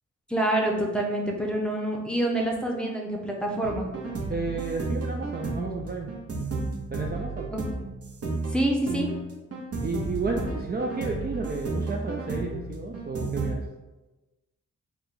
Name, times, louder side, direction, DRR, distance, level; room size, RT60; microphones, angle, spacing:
voice 1, 0.3-3.9 7.5-7.6 8.5-9.1, right 1 dB, 5° left, 0 dB, 0.7 m, -26 dB
sound 1, 3.6-13.5, right 3 dB, 50° right, 0.9 m, -33 dB
voice 2, 4.3-6.1 6.9-7.5 9.8-13.6, right 3 dB, 35° right, 0 dB, 0.4 m, -32 dB
3.5 x 2.3 x 4.0 m, 1.1 s
cardioid pair, 70°, 31 cm